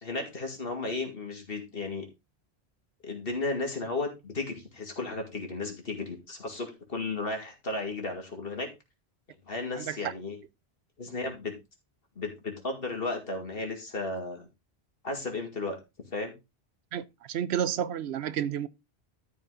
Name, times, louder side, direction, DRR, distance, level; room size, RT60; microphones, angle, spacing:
voice 1, 0.0-2.0 3.0-8.7 9.5-10.4 11.0-11.5 12.2-14.5 15.0-15.8 16.1-16.3, left 3 dB, 60° left, 2.5 m, -34 dB
voice 2, 16.9-18.7, right 9 dB, 80° right, 0.9 m, -31 dB
13.0 x 5.0 x 3.8 m
omnidirectional pair, 1.1 m